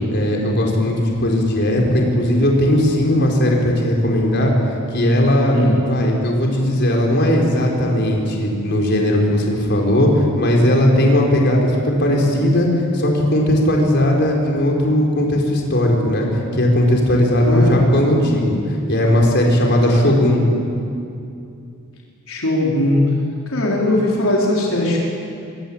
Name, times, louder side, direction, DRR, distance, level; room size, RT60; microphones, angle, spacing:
voice 1, 0.1-4.5 4.9-5.6 5.8-20.4, left 1 dB, 55° left, 0 dB, 5.0 m, -17 dB
voice 2, 17.5-17.8 22.3-23.1 23.5-25.0, left 1 dB, 80° left, -3 dB, 4.3 m, -19 dB
24.0 x 22.5 x 8.9 m, 2.5 s
head